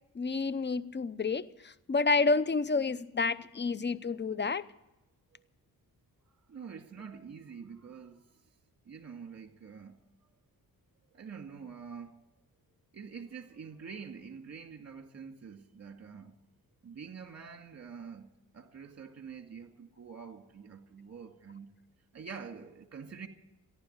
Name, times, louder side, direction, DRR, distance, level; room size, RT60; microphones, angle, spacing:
voice 1, 0.1-4.7, left 4 dB, 30° left, 0.7 m, -29 dB
voice 2, 6.5-8.3 8.9-10.0 11.1-12.2 12.9-16.4 16.8-21.7 22.1-23.3, right 6 dB, 40° right, 2.0 m, -46 dB
14.5 x 11.5 x 8.0 m
cardioid pair, 65°, 38 cm